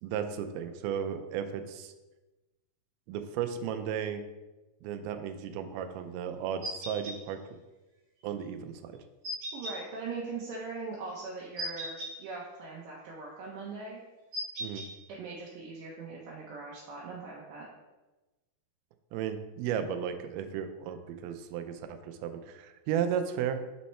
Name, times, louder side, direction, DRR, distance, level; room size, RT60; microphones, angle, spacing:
voice 1, 0.0-1.9 3.1-4.2 4.8-7.4 8.2-9.0 14.6-14.9 19.1-23.6, right 8 dB, 90° right, 8 dB, 2.4 m, -34 dB
sound 1, 6.6-7.2 9.2-9.8 11.6-12.1 14.3-14.9, equal, 50° right, 2.0 m, -36 dB
voice 2, 9.5-14.0 15.1-17.7, right 4 dB, 75° right, -3 dB, 2.3 m, -41 dB
5.5 x 4.2 x 4.2 m, 1.1 s
omnidirectional pair, 4.3 m